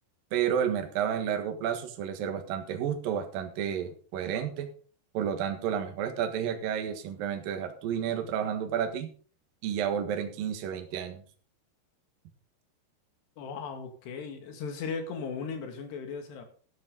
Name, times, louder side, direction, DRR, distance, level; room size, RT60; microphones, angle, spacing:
voice 1, 0.3-4.7 5.1-9.1 9.6-11.2, right 8 dB, 65° right, 5 dB, 3.0 m, -31 dB
voice 2, 13.4-16.5, left 5 dB, 75° left, 5 dB, 4.2 m, -37 dB
14.0 x 10.5 x 3.9 m, 0.42 s
omnidirectional pair, 5.0 m